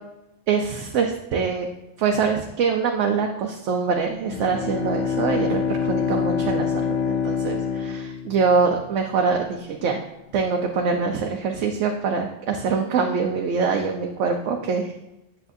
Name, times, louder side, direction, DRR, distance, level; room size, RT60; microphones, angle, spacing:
voice 1, 0.5-1.7 2.0-10.0 10.3-14.9, right 5 dB, 75° right, 2 dB, 1.0 m, -24 dB
Bowed string instrument, 4.2-8.8, left 6 dB, 75° left, 1.0 m, -26 dB
8.2 x 7.3 x 2.6 m, 0.92 s
omnidirectional pair, 1.3 m